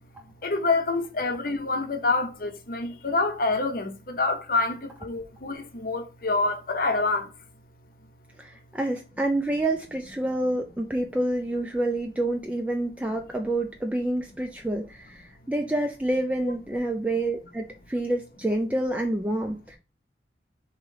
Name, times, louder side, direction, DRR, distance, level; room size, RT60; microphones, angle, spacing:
voice 1, 0.2-7.3, left 3 dB, 50° left, 0.7 m, -27 dB
voice 2, 8.4-19.8, right 1 dB, 10° right, 0.3 m, -28 dB
3.8 x 3.0 x 4.6 m
head